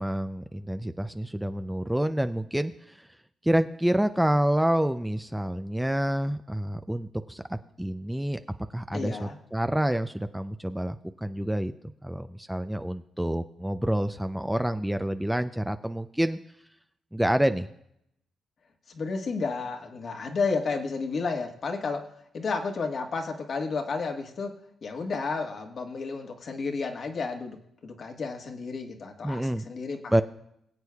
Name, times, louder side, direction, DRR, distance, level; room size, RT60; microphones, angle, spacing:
voice 1, 0.0-3.1 3.4-8.4 8.7-11.7 12.0-16.4 17.1-17.7 29.2-29.6 30.1-30.2, right 1 dB, 5° right, 9 dB, 0.5 m, -28 dB
voice 2, 8.9-9.4 18.9-22.1 22.3-27.6 27.8-30.2, left 4 dB, 55° left, 4 dB, 1.5 m, -32 dB
22.0 x 8.1 x 2.3 m, 0.75 s
cardioid pair, 85°, 0 cm